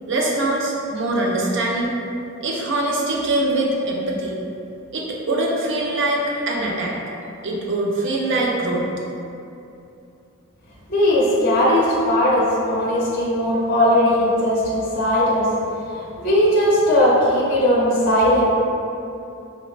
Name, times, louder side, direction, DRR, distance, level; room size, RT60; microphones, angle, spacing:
voice 1, 0.1-1.9 2.4-4.4 4.9-7.0 7.4-8.9, right 2 dB, 60° right, -2 dB, 0.5 m, -23 dB
voice 2, 10.9-15.5 15.9-18.5, left 1 dB, 45° left, -7 dB, 0.6 m, -18 dB
5.2 x 2.1 x 2.4 m, 2.7 s
head